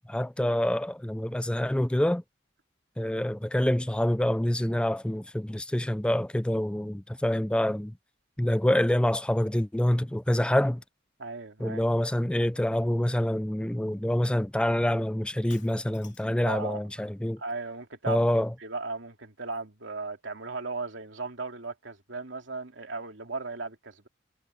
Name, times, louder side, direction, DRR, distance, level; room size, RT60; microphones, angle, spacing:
voice 1, 0.1-2.2 3.0-7.9 8.4-10.8 11.6-17.4 18.1-18.5, left 1 dB, 5° left, 0.4 m, -26 dB
voice 2, 11.2-11.8 16.5-16.8 17.4-18.2 18.6-24.1, right 3 dB, 90° right, 2.7 m, -36 dB
Shatter, 15.5-16.5, left 7 dB, 70° left, 2.9 m, -54 dB
head